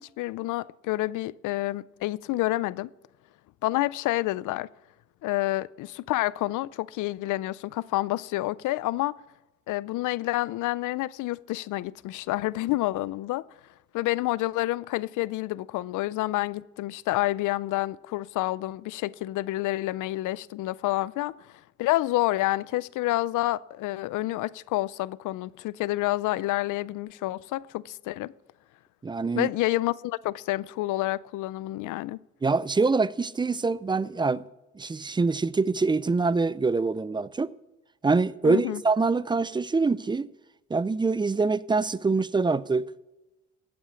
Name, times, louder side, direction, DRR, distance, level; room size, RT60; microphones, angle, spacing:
voice 1, 0.2-2.9 3.6-4.7 5.2-9.1 9.7-13.4 13.9-21.5 21.8-28.3 29.3-32.2 38.4-38.8, left 17 dB, 85° left, 0.5 m, -28 dB
voice 2, 29.0-29.5 32.4-34.4 34.8-37.5 38.0-40.3 40.7-42.8, right 4 dB, 15° right, 0.4 m, -25 dB
14.5 x 8.8 x 6.9 m
cardioid pair, 90°, 30 cm